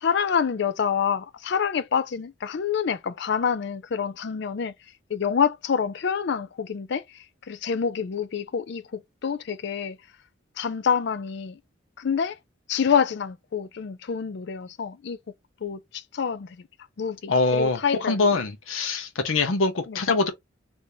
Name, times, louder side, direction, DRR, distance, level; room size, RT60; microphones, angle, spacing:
voice 1, 0.0-4.7 5.1-7.0 7.5-10.0 10.6-11.6 12.0-12.4 12.7-15.2 15.6-16.7 17.0-18.4 19.9-20.0, left 7 dB, 60° left, 0.4 m, -27 dB
voice 2, 17.3-20.3, left 3 dB, 85° left, 0.7 m, -24 dB
3.3 x 2.6 x 2.7 m
head